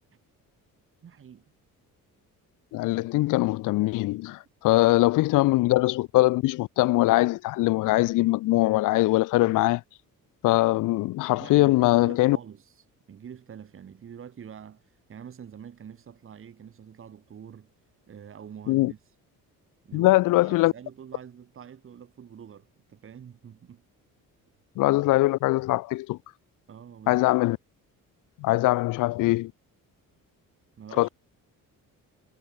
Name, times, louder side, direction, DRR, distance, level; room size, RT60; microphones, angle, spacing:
voice 1, 1.0-1.4 11.4-17.7 18.1-19.0 19.8-23.8 26.7-27.2 30.8-31.1, right 8 dB, 40° right, 4.1 m, -46 dB
voice 2, 2.7-9.8 10.4-12.4 18.7-18.9 19.9-20.7 24.8-26.2 27.1-27.6 28.4-29.5 31.0-31.1, left 19 dB, 70° left, 0.5 m, -22 dB
cardioid pair, 155°, 33 cm